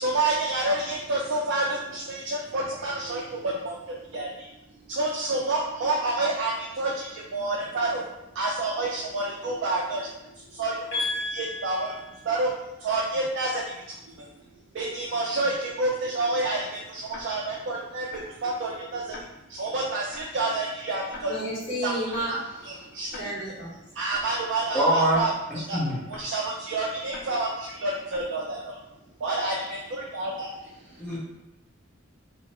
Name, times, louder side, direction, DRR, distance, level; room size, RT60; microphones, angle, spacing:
voice 1, 0.0-4.5 4.9-8.1 8.3-10.1 10.3-11.0 11.3-12.0 12.2-12.5 12.8-14.3 14.7-21.3 21.8-23.2 23.9-25.8 26.1-28.8 29.2-31.0, right 2 dB, 70° right, -2 dB, 0.4 m, -29 dB
voice 2, 10.9-12.1 21.3-22.4 23.2-23.7, left 1 dB, 65° left, -9 dB, 1.5 m, -31 dB
Tick-tock, 17.1-17.2 18.1-18.2 19.1-19.2 20.1-20.2 21.1-21.2 22.1-22.2 23.1-23.2 24.1-24.2 25.1-25.2 26.1-26.2 27.1-27.2 28.1-28.2, left 3 dB, 50° left, 0.4 m, -42 dB
voice 3, 24.7-25.2 25.7-26.0 31.0-31.2, right 1 dB, 5° left, -7 dB, 0.6 m, -23 dB
2.7 x 2.0 x 2.9 m, 0.92 s
head